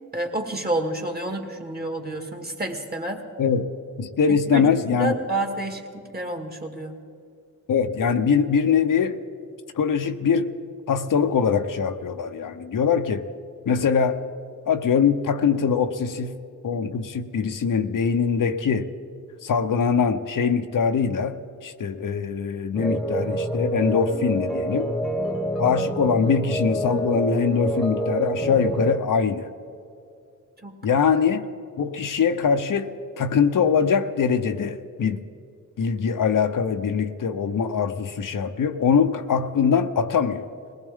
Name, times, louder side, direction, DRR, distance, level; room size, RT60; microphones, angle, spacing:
voice 1, 0.1-3.2 4.3-7.0 30.6-31.0, right 2 dB, 30° right, 4 dB, 1.9 m, -29 dB
voice 2, 4.0-5.2 7.7-9.2 9.8-10.5 10.9-13.2 13.7-14.3 14.7-16.3 16.6-18.9 19.4-21.4 21.6-24.9 25.6-29.5 30.8-31.4 31.8-32.9 33.2-35.2 35.8-40.5, left 6 dB, 85° left, 7 dB, 0.8 m, -22 dB
sound 1, 22.8-29.0, right 1 dB, ahead, 1.2 m, -27 dB
21.0 x 18.5 x 3.6 m, 2.5 s
wide cardioid pair, 80°, 32 cm